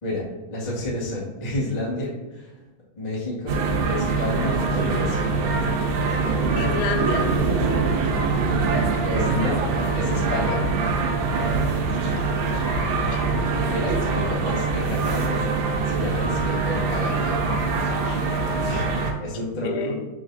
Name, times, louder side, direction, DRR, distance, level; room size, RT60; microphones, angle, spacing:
voice 1, 0.0-2.5 2.9-3.6 3.9-5.3 9.0-9.6 9.9-10.6 13.7-15.6 15.8-17.4 18.0-18.2 18.6-19.9, left 1 dB, 30° left, -5 dB, 0.7 m, -30 dB
sound 1, 3.5-19.1, right 4 dB, 75° right, 2.5 m, -23 dB
voice 2, 6.6-7.3 12.4-13.2 19.5-20.1, left 5 dB, 85° left, 5 dB, 2.4 m, -30 dB
5.9 x 4.8 x 3.9 m, 1.1 s
omnidirectional pair, 4.1 m